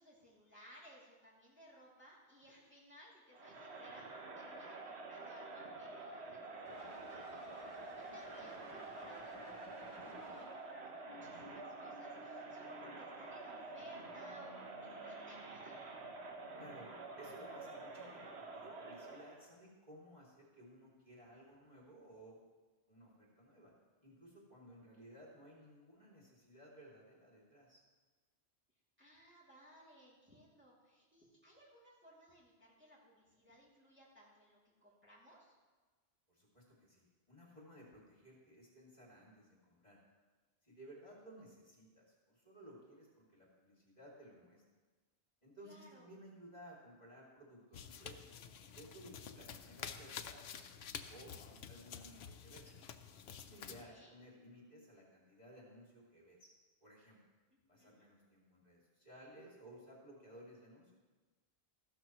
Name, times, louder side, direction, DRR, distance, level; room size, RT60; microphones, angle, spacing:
voice 1, 0.0-4.1 4.3-15.8 29.0-35.5 45.6-46.1 53.8-54.1 57.5-58.1, equal, 10° right, -6 dB, 2.5 m, -61 dB
Crowd, 3.3-19.5, right 3 dB, 80° right, 1.4 m, -49 dB
sound 1, 6.7-10.8, left 1 dB, 20° left, 3.3 m, -56 dB
voice 2, 16.6-16.9 17.2-22.4 22.9-23.7 24.0-27.8 36.3-40.0 40.6-44.6 45.4-48.3 48.6-50.4 51.1-52.7 53.3-56.5 56.8-57.2 57.7-60.9, equal, 40° left, -4 dB, 2.6 m, -58 dB
sound 2, 47.7-53.8, left 7 dB, 75° left, 0.9 m, -50 dB
14.5 x 12.0 x 3.0 m, 1.3 s
omnidirectional pair, 1.1 m